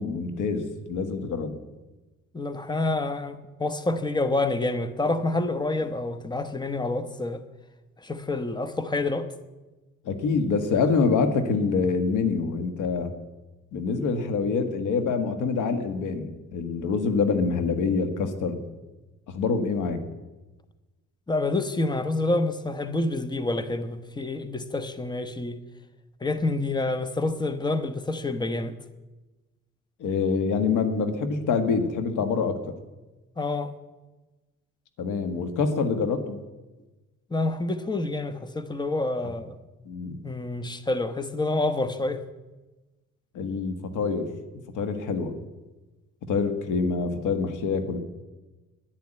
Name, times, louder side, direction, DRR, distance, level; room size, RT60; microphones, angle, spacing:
voice 1, 0.0-1.5 10.0-13.1 13.7-18.6 19.3-20.0 30.0-32.7 35.0-36.4 39.8-40.2 43.3-44.3 44.7-45.3 46.3-48.0, left 5 dB, 90° left, 1.7 m, -26 dB
voice 2, 2.3-7.4 8.0-9.3 21.3-25.6 26.2-28.7 33.4-33.7 37.3-39.5 40.2-42.2, left 2 dB, 15° left, 1.1 m, -28 dB
10.5 x 10.5 x 8.9 m
cardioid pair, 90°, 30 cm